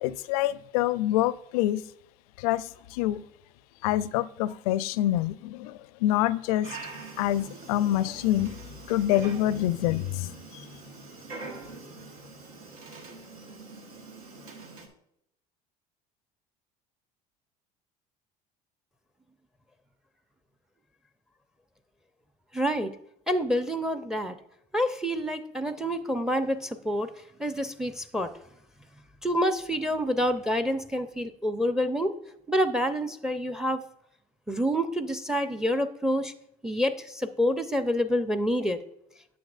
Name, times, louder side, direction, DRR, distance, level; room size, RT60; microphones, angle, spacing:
voice 1, 0.0-1.9 2.4-3.2 3.8-6.8 7.2-8.5 8.9-10.6, left 13 dB, 75° left, 18 dB, 0.4 m, -26 dB
Dog, 6.6-14.9, right 3 dB, 80° right, 1.3 m, -44 dB
voice 2, 22.5-22.9 23.3-24.4 24.7-27.1 27.4-28.3 29.2-32.1 32.5-33.8 34.5-36.3 36.6-38.8, equal, 5° right, 10 dB, 0.6 m, -27 dB
9.3 x 6.9 x 2.4 m, 0.77 s
hypercardioid pair, 70°, 19 cm